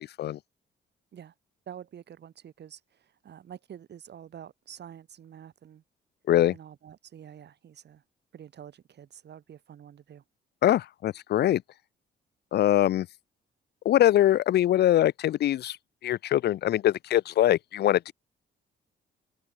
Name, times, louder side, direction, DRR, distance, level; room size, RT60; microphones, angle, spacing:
voice 1, 1.7-5.8 6.5-8.0 8.3-10.2, right 9 dB, 60° right, 2.9 m, -47 dB
voice 2, 10.6-11.6 12.5-13.1 13.9-15.8 16.0-18.1, left 12 dB, 55° left, 0.4 m, -23 dB
cardioid pair, 90°, 20 cm